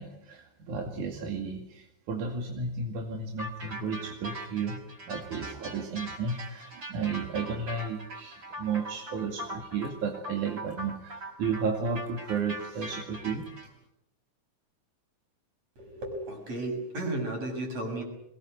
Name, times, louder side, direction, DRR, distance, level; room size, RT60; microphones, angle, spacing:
voice 1, 0.0-4.8 5.1-13.5, right 5 dB, 90° right, 3 dB, 3.7 m, -33 dB
sound 1, 3.4-13.7, equal, 40° right, 5.7 m, -41 dB
voice 2, 15.8-18.0, right 2 dB, 60° right, 3 dB, 7.7 m, -34 dB
22.5 x 20.5 x 9.4 m, 0.83 s
omnidirectional pair, 3.4 m